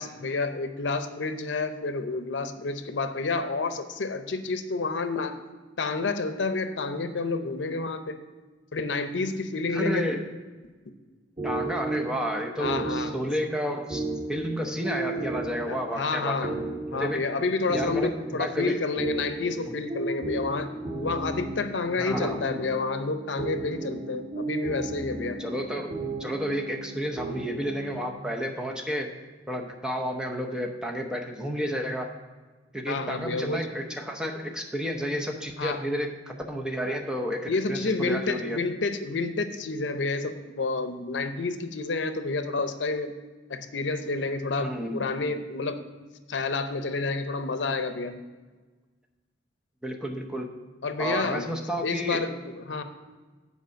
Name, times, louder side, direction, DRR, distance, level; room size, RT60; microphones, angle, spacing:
voice 1, 0.0-5.4 5.8-8.2 8.7-10.0 12.6-13.2 15.7-16.6 16.9-20.7 21.0-25.4 32.9-33.7 35.6-35.8 37.5-43.1 43.5-45.8 46.3-48.1 50.8-51.5 51.8-52.8, left 3 dB, 85° left, 9 dB, 0.6 m, -29 dB
voice 2, 9.7-10.3 11.4-14.0 14.3-16.4 16.9-17.2 17.7-18.8 19.7-19.8 22.0-22.4 25.4-25.9 26.2-29.1 29.5-32.1 32.7-38.6 44.6-45.1 49.8-50.5 51.0-52.3, equal, 5° right, 2 dB, 0.8 m, -31 dB
sound 1, 11.4-28.1, right 2 dB, 30° right, 1.7 m, -35 dB
8.1 x 4.7 x 6.3 m, 1.3 s
head